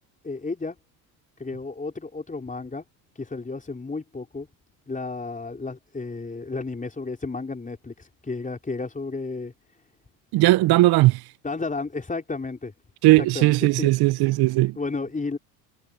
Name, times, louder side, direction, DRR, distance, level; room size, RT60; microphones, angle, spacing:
voice 1, 0.2-0.8 1.4-2.8 3.1-4.5 4.9-9.5 11.4-12.7 13.2-13.9 14.8-15.4, left 3 dB, 15° left, 5.0 m, -32 dB
voice 2, 10.3-11.2 13.0-14.8, right 19 dB, 55° right, 0.7 m, -18 dB
supercardioid pair, 85°, 45 cm